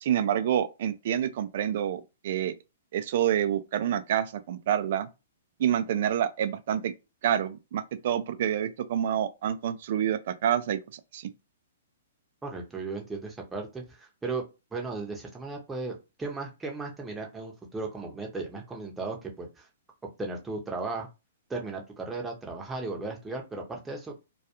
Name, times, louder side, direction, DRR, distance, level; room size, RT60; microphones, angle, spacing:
voice 1, 0.0-2.5 2.9-5.1 5.6-6.9 7.2-11.3, right 10 dB, 55° right, 0.4 m, -28 dB
voice 2, 12.4-14.4 14.7-19.7 20.2-21.1 21.5-24.1, right 3 dB, 10° right, 0.7 m, -36 dB
2.3 x 2.2 x 2.9 m
hypercardioid pair, 120°, 0 cm